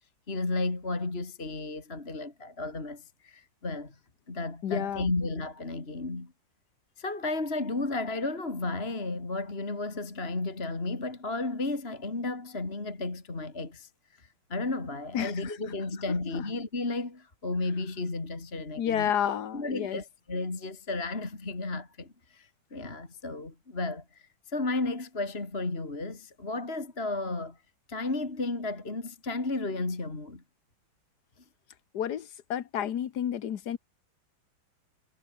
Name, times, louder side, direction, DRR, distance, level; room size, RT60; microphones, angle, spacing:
voice 1, 0.3-4.0 4.3-6.3 7.0-13.9 14.2-19.1 19.5-27.6 27.9-30.4, left 2 dB, 30° left, 3.1 m, -33 dB
voice 2, 4.6-5.1 15.1-15.5 16.3-16.4 18.8-20.0 31.9-33.8, left 9 dB, 55° left, 1.6 m, -31 dB
omnidirectional pair, 2.3 m